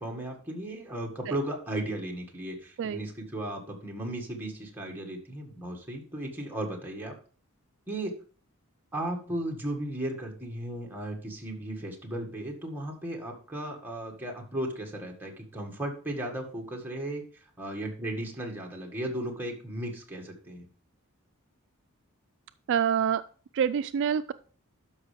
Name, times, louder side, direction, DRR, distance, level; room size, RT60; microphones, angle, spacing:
voice 1, 0.0-7.2 7.9-8.2 8.9-20.7, right 1 dB, 10° right, -1 dB, 1.8 m, -35 dB
voice 2, 22.7-23.2 23.5-24.3, right 8 dB, 60° right, 12 dB, 0.3 m, -26 dB
12.0 x 5.5 x 3.4 m, 0.41 s
head